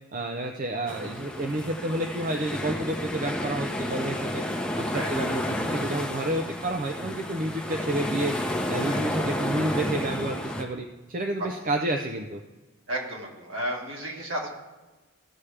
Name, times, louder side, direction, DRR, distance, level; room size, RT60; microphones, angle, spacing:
voice 1, 0.1-4.4 4.8-8.3 8.7-12.4, right 1 dB, 40° right, 4 dB, 0.5 m, -30 dB
sound 1, 0.9-10.6, left 1 dB, 5° left, 0.7 m, -31 dB
voice 2, 12.9-14.5, right 1 dB, 60° right, -1 dB, 2.0 m, -32 dB
15.0 x 7.1 x 3.3 m, 1.2 s
head